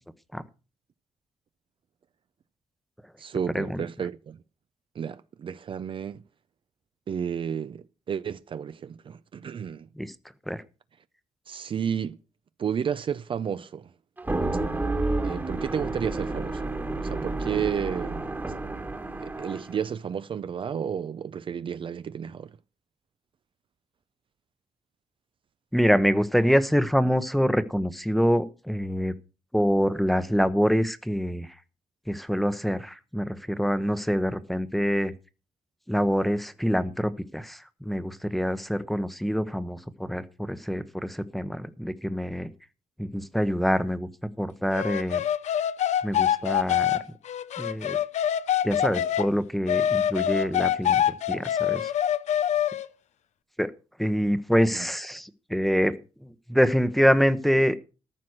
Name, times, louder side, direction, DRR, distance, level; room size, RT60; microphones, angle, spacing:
voice 1, 3.2-4.4 5.0-6.2 7.1-9.9 11.5-12.2 12.6-13.9 15.2-16.6 17.0-18.3 19.2-22.6 54.7-54.9, right 8 dB, 45° right, 0.5 m, -32 dB
sound 1, 14.2-19.8, right 2 dB, 15° right, 1.4 m, -30 dB
voice 2, 25.7-29.1 29.5-31.5 32.1-35.1 35.9-42.5 43.0-44.1 44.4-45.2 46.0-47.0 47.6-48.0 48.6-51.9 53.6-53.7 54.0-57.8, equal, ahead, 0.9 m, -25 dB
sound 2, 44.7-49.3 49.7-52.9, left 10 dB, 80° left, 0.7 m, -25 dB
14.0 x 6.0 x 6.4 m
cardioid pair, 115°, 12 cm